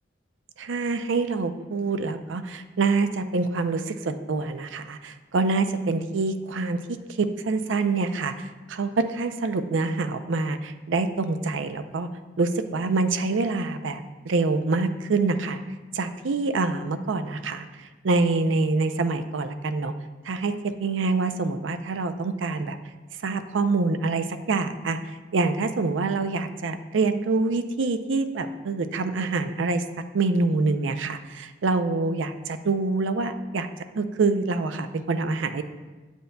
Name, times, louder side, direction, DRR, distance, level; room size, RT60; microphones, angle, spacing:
voice 1, 0.6-12.1 12.4-15.6 15.9-17.7 18.0-19.9 20.3-22.8 23.2-25.0 25.3-29.8 30.1-33.7 34.0-35.6, right 3 dB, 80° right, 9 dB, 0.5 m, -26 dB
7.9 x 7.8 x 2.2 m, 1.2 s
head